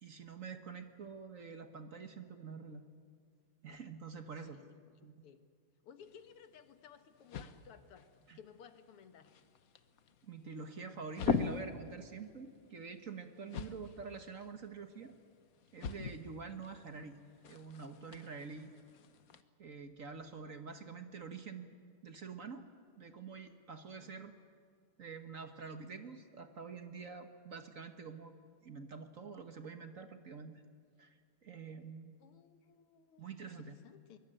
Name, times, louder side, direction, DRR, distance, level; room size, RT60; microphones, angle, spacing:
voice 1, 0.0-2.8 3.6-4.6 5.0-5.1 8.3-8.4 10.2-15.1 15.7-17.2 17.4-18.7 19.6-21.7 22.0-22.7 23.0-24.3 25.0-28.3 28.6-30.5 31.0-32.1 33.2-33.7, right 5 dB, 45° right, 8 dB, 1.3 m, -47 dB
voice 2, 4.1-5.4 5.8-9.3 20.4-20.6 24.0-24.2 32.2-34.2, left 7 dB, 90° left, 10 dB, 2.3 m, -58 dB
sound 1, 6.0-19.4, left 5 dB, 50° left, 1.2 m, -43 dB
23.0 x 22.5 x 8.9 m, 2.1 s
omnidirectional pair, 2.4 m